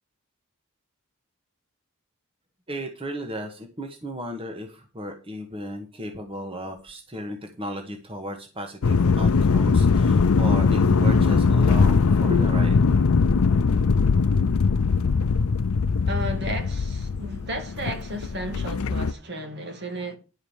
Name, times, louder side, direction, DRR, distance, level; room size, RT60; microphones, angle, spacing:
voice 1, 2.7-12.8, equal, 25° right, 1.4 m, -34 dB
sound 1, 8.8-19.1, left 4 dB, 80° left, 0.5 m, -20 dB
voice 2, 16.1-20.2, right 1 dB, 50° right, 2.0 m, -33 dB
11.5 x 4.9 x 7.2 m
head